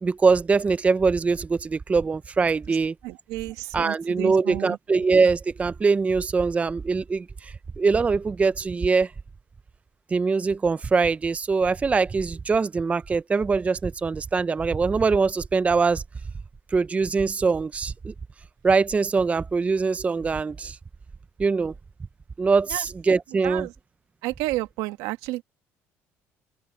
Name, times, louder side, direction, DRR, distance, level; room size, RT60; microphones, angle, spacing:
voice 1, 0.0-2.9 3.7-9.1 10.1-16.0 16.7-18.1 18.6-20.8 21.4-21.7 22.4-23.7, right 4 dB, 25° right, 0.5 m, -23 dB
voice 2, 3.0-4.8 22.7-22.8 23.4-23.7 24.2-25.4, right 19 dB, 85° right, 1.8 m, -31 dB
cardioid pair, 100°, 6 cm